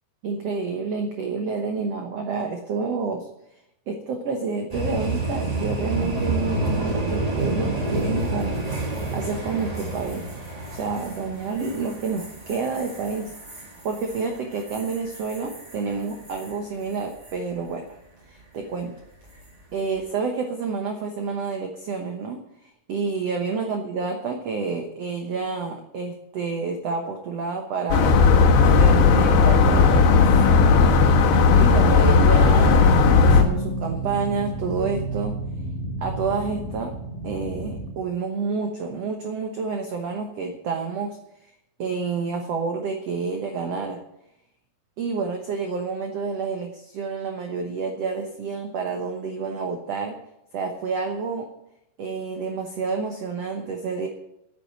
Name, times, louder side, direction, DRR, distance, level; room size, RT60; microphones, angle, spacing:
voice 1, 0.2-3.3 3.9-8.7 9.1-10.3 10.7-13.3 13.8-18.0 18.3-18.9 19.7-28.2 28.7-30.7 31.6-35.3 36.0-36.9 37.2-41.2 41.8-44.0 45.0-50.2 50.5-51.5 52.0-54.1, right 4 dB, 80° right, 4 dB, 1.4 m, -29 dB
sound 1, 4.7-16.5 16.9-17.3 19.2-19.6, right 2 dB, 60° right, 0.4 m, -30 dB
sound 2, 27.9-33.4, left 5 dB, 85° left, 3.4 m, -16 dB
sound 3, 28.6-37.9, right 1 dB, 55° left, 1.7 m, -29 dB
9.1 x 8.6 x 9.0 m, 0.81 s
omnidirectional pair, 4.6 m